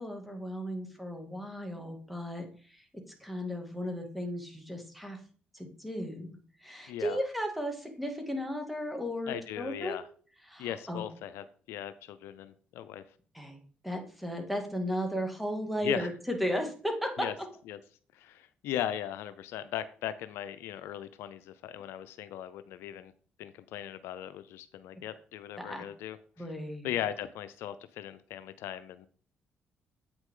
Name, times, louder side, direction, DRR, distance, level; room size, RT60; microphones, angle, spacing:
voice 1, 0.0-2.8 3.2-5.2 5.5-6.3 6.6-10.0 10.5-11.0 13.3-13.6 13.8-17.3 25.6-25.9 26.4-26.9, equal, ahead, 2.2 m, -35 dB
voice 2, 6.9-7.2 9.3-10.1 10.6-13.0 15.8-16.1 17.2-17.3 17.7-17.8 18.1-23.1 23.4-26.2 26.8-29.1, left 11 dB, 85° left, 0.5 m, -38 dB
8.3 x 5.9 x 3.8 m
supercardioid pair, 60°, 4 cm